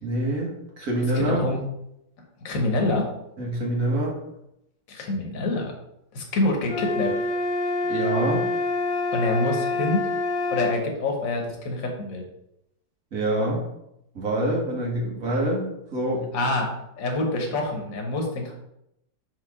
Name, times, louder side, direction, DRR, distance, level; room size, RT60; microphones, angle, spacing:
voice 1, 0.0-1.4 3.4-4.1 7.8-8.5 13.1-13.6 14.2-15.7 15.9-16.2, right 1 dB, 55° right, -2 dB, 1.9 m, -25 dB
voice 2, 1.1-1.6 2.4-3.1 4.9-5.7 6.1-7.2 9.1-10.1 10.5-12.2 16.3-18.5, left 2 dB, 55° left, 1 dB, 1.5 m, -26 dB
sound 1, 6.7-10.8, left 2 dB, 90° left, 0.4 m, -26 dB
4.9 x 4.0 x 4.9 m, 0.82 s
omnidirectional pair, 1.8 m